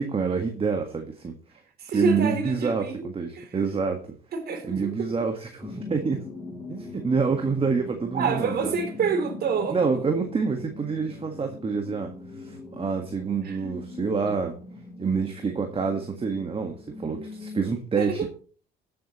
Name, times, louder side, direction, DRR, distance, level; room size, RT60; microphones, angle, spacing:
voice 1, 0.0-1.6 1.9-4.0 4.7-6.2 6.7-8.7 9.7-12.1 12.4-14.6 15.0-18.3, right 5 dB, 30° right, 1.7 m, -27 dB
voice 2, 1.8-3.1 3.3-3.5 4.3-5.1 8.1-9.8 13.4-13.6 14.0-14.4 17.9-18.3, right 5 dB, 55° right, 3.3 m, -28 dB
sound 1, 5.6-17.8, left 2 dB, 10° right, 5.9 m, -41 dB
17.0 x 7.8 x 3.1 m
supercardioid pair, 90°, 19 cm